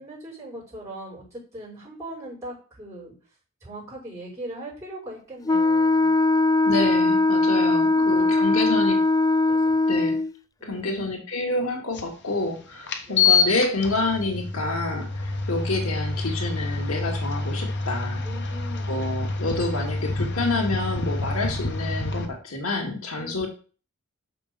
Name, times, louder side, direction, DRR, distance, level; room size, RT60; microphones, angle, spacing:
voice 1, 0.0-3.1 3.6-6.1 7.6-8.8 9.5-9.8 10.6-11.1 13.1-13.4 18.2-19.0 23.2-23.5, right 1 dB, 15° right, -6 dB, 5.8 m, -40 dB
Wind instrument woodwind instrument, 5.5-10.3, left 2 dB, 15° left, 0.3 m, -20 dB
voice 2, 6.6-9.0 9.9-10.2 10.6-18.2 18.9-23.5, left 2 dB, 85° left, 1 dB, 2.4 m, -28 dB
sound 1, 11.9-12.0 12.9-22.3, left 4 dB, 55° left, 1.4 m, -27 dB
6.4 x 6.2 x 6.9 m, 0.38 s
head